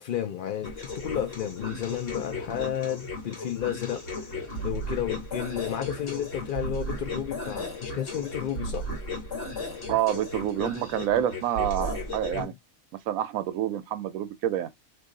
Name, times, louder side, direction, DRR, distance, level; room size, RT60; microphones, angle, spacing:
voice 1, 0.0-4.3 4.6-8.9 12.3-12.5, left 10 dB, 85° left, 0.4 m, -32 dB
sound 1, 0.6-12.4, left 1 dB, 50° left, 1.5 m, -35 dB
voice 2, 9.9-12.5 13.1-14.7, right 11 dB, 75° right, 1.0 m, -27 dB
2.7 x 2.7 x 3.7 m
omnidirectional pair, 1.5 m